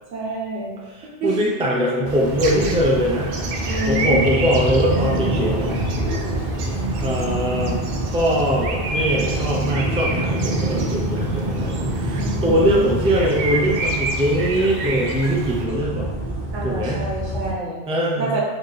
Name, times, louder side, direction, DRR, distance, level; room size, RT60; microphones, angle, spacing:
voice 1, 0.1-0.7 1.2-1.4 3.6-4.4 12.2-12.9 16.5-17.8 18.2-18.4, right 2 dB, 85° right, -3 dB, 1.3 m, -27 dB
voice 2, 0.9-3.4 3.9-5.8 7.0-7.8 8.1-11.7 12.0-16.1 16.6-17.1 17.9-18.4, equal, 10° right, -3 dB, 0.4 m, -22 dB
sound 1, 2.0-15.6, right 3 dB, 60° right, 0.6 m, -30 dB
sound 2, 2.3-17.5, right 1 dB, 40° left, 1.7 m, -26 dB
4.2 x 2.9 x 3.3 m, 1.3 s
omnidirectional pair, 1.2 m